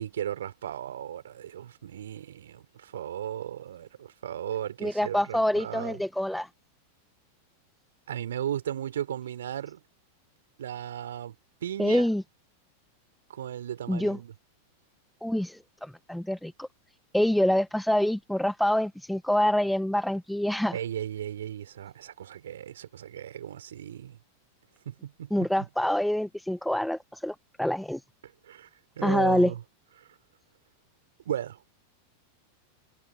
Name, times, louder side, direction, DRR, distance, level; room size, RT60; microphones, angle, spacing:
voice 1, 0.0-6.0 8.1-9.8 10.6-11.3 11.6-12.1 13.3-14.3 20.7-24.2 24.9-25.5 28.5-28.7 29.0-29.6 30.0-30.1 31.3-31.6, right 10 dB, 60° right, 4.2 m, -36 dB
voice 2, 4.8-6.5 11.8-12.2 13.9-14.2 15.2-16.7 17.1-20.8 25.3-28.0 29.0-29.5, left 1 dB, ahead, 1.4 m, -26 dB
figure-of-eight pair, 90°, 0 cm